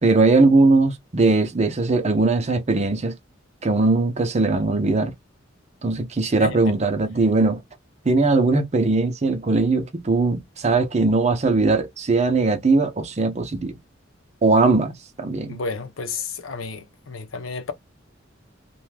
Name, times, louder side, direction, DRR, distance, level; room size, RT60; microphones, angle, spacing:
voice 1, 0.0-3.1 3.6-5.1 5.8-7.6 8.1-13.8 14.4-15.6, right 3 dB, 35° right, 0.6 m, -20 dB
voice 2, 15.5-17.7, left 4 dB, 80° left, 0.7 m, -31 dB
2.5 x 2.2 x 3.2 m
head